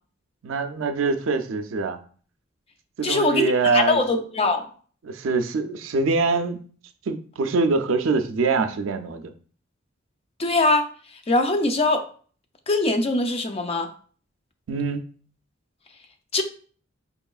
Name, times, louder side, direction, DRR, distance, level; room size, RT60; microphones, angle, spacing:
voice 1, 0.4-2.0 3.0-4.0 5.0-6.6 7.1-9.3 14.7-15.0, right 4 dB, 75° right, 8 dB, 0.4 m, -24 dB
voice 2, 3.0-4.7 10.4-10.9 11.3-12.0 12.7-13.9 16.3-16.4, left 2 dB, 30° left, 6 dB, 0.4 m, -22 dB
4.6 x 2.9 x 2.3 m, 0.44 s
head